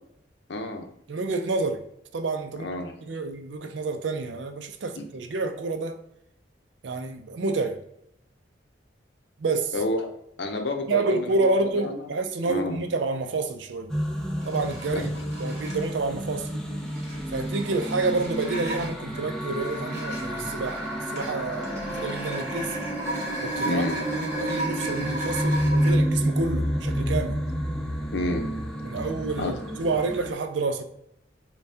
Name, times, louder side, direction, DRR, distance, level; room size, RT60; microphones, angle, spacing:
voice 1, 0.5-0.9 2.6-2.9 4.9-5.0 9.7-10.0 10.4-12.1 12.5-12.8 14.9-15.1 23.6-24.0 28.1-28.5 29.4-29.6, left 2 dB, 70° left, 0.7 m, -29 dB
voice 2, 1.1-1.8 2.1-2.7 3.0-6.0 6.8-7.8 9.4-9.7 10.9-14.0 14.4-15.1 15.4-16.5 17.3-22.8 23.4-23.8 24.2-27.4 28.8-30.8, right 3 dB, 75° right, 0.5 m, -28 dB
sound 1, 13.9-30.3, equal, 5° left, 0.5 m, -29 dB
sound 2, 14.4-16.0 16.6-25.9, right 1 dB, 45° right, 1.2 m, -36 dB
5.4 x 2.3 x 2.7 m
head